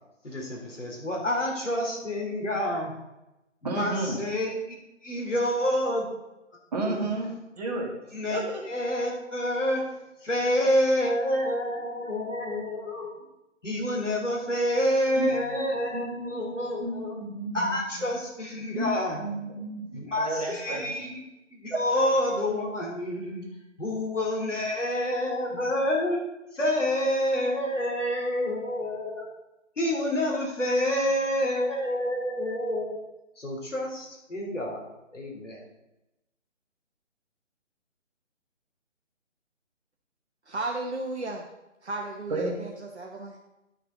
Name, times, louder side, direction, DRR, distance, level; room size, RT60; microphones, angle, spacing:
voice 1, 0.2-2.9 3.6-4.7 5.0-6.0 6.8-7.1 8.1-8.4 8.7-9.8 10.2-13.1 13.6-17.2 17.5-19.2 19.9-21.2 21.5-23.5 23.8-26.2 26.5-29.3 29.8-33.0 33.4-34.8 35.1-35.6, left 1 dB, 70° left, -1 dB, 3.2 m, -28 dB
voice 2, 3.6-4.2 6.7-7.9 8.3-8.6 15.2-15.4 15.9-17.8 18.7-20.9 42.3-42.5, right 2 dB, 35° right, -1 dB, 1.9 m, -32 dB
voice 3, 40.5-41.5 41.8-43.4, right 2 dB, 60° right, 1 dB, 1.1 m, -34 dB
11.5 x 6.6 x 3.8 m, 0.94 s
figure-of-eight pair, 145°, 38 cm